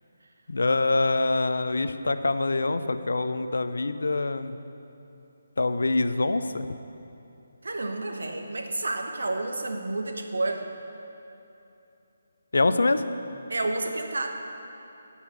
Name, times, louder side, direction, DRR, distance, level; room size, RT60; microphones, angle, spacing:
voice 1, 0.5-4.5 5.6-6.7 12.5-13.1, left 2 dB, 90° left, 11 dB, 0.5 m, -25 dB
voice 2, 7.6-10.6 13.5-14.3, right 2 dB, 90° right, 4 dB, 1.1 m, -30 dB
11.0 x 5.6 x 7.0 m, 2.8 s
hypercardioid pair, 175°, 0 cm